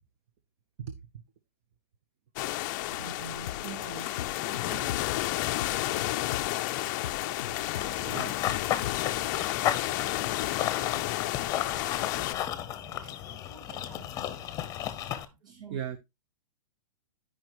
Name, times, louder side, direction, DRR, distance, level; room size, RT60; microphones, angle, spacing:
sound 1, 2.4-12.3, left 17 dB, 35° left, 0.5 m, -31 dB
voice 1, 3.0-4.1 4.7-4.9 15.6-16.0, right 4 dB, 85° right, 1.8 m, -43 dB
sound 2, 3.5-9.1, left 10 dB, 85° left, 0.5 m, -40 dB
voice 2, 4.1-15.6, right 2 dB, 20° right, 6.8 m, -53 dB
Run / Bird vocalization bird call bird song, 7.8-15.2, left 11 dB, 20° left, 0.8 m, -34 dB
voice 3, 15.5-16.0, right 8 dB, 50° right, 0.9 m, -37 dB
12.5 x 5.2 x 3.0 m
hypercardioid pair, 150°, 18 cm